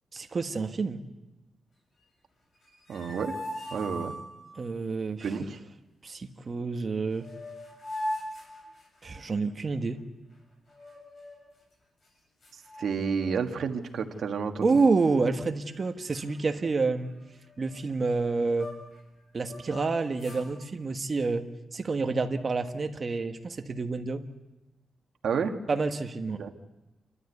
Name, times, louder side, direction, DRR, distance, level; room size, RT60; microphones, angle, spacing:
voice 1, 0.1-1.0 4.6-5.3 6.0-7.3 9.0-10.0 14.6-17.1 17.6-18.7 19.3-21.4 21.7-24.2 25.7-26.5, right 4 dB, 40° right, 6 dB, 1.4 m, -28 dB
sound 1, 2.5-4.6 6.7-6.8 7.1-9.3 10.7-11.5 12.0-12.1 12.4-13.5 13.8-14.2 14.7-15.4 15.7-15.8 16.1-19.0 19.4-20.5, left 1 dB, 55° left, 7.5 m, -41 dB
voice 2, 2.9-3.4 3.7-4.1 5.2-5.6 12.8-14.8 25.2-25.5 26.4-26.5, right 6 dB, 75° right, 4 dB, 1.6 m, -30 dB
28.5 x 13.0 x 8.2 m, 1.1 s
wide cardioid pair, 125°, 0 cm